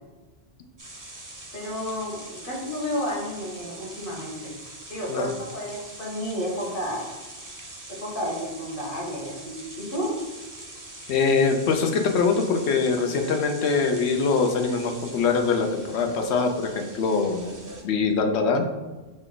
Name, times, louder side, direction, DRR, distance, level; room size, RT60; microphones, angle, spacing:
sound 1, 0.8-17.8, right 2 dB, 25° right, 0.5 m, -43 dB
voice 1, 1.5-4.5 4.9-7.1 7.9-10.2, equal, 55° left, -3 dB, 1.4 m, -31 dB
voice 2, 11.1-17.6 17.8-18.6, left 4 dB, 85° left, 5 dB, 0.9 m, -23 dB
5.2 x 2.2 x 3.8 m, 1.2 s
omnidirectional pair, 1.1 m